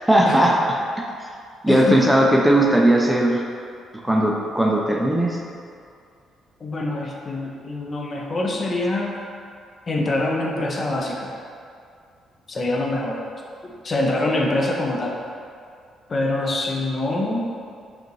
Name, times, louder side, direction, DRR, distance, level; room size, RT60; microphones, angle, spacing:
voice 1, 0.1-0.6 1.0-1.1 1.6-3.4 4.0-5.4, right 1 dB, 5° right, -1 dB, 0.5 m, -17 dB
voice 2, 1.7-2.0 6.6-9.2 9.9-11.3 12.5-13.2 13.6-15.2 16.1-17.5, left 2 dB, 40° left, -1 dB, 0.6 m, -24 dB
5.0 x 2.6 x 3.1 m, 2.3 s
supercardioid pair, 75°, 0 cm